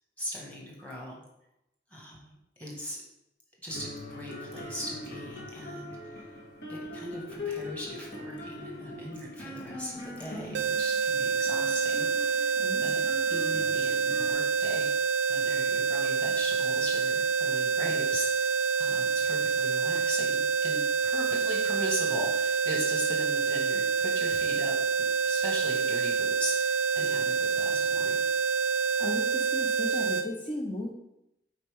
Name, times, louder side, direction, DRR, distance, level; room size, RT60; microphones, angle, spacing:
voice 1, 0.2-1.2 1.9-3.0 3.6-6.2 6.7-12.5 12.8-13.0 13.3-14.9 15.3-18.5 18.8-24.7 25.2-28.2, equal, 10° left, -3 dB, 1.8 m, -39 dB
sound 1, 3.7-14.3, left 2 dB, 60° left, 2.1 m, -41 dB
sound 2, 10.5-30.3, right 5 dB, 65° right, 0.4 m, -27 dB
voice 2, 12.6-13.0 29.0-30.9, left 1 dB, 30° left, -2 dB, 0.7 m, -36 dB
8.7 x 4.1 x 3.7 m, 0.85 s
head